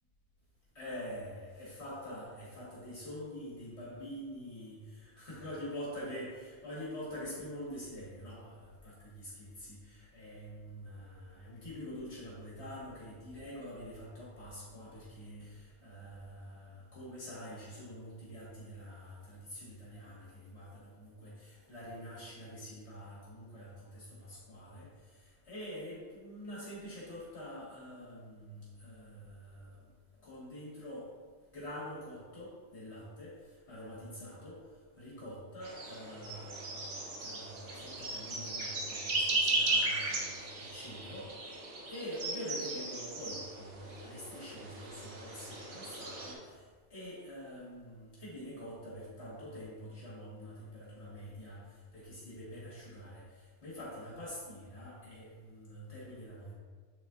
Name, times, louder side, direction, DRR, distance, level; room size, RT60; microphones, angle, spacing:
voice 1, 0.8-24.9 25.5-29.8 30.2-31.1 31.5-33.3 33.7-34.6 35.0-41.3 41.9-46.6 46.9-53.3 53.6-56.5, equal, 65° left, -7 dB, 2.0 m, -46 dB
sound 1, 35.6-46.3, right 2 dB, 80° right, 1.5 m, -36 dB
7.6 x 4.2 x 3.7 m, 1.5 s
omnidirectional pair, 1.2 m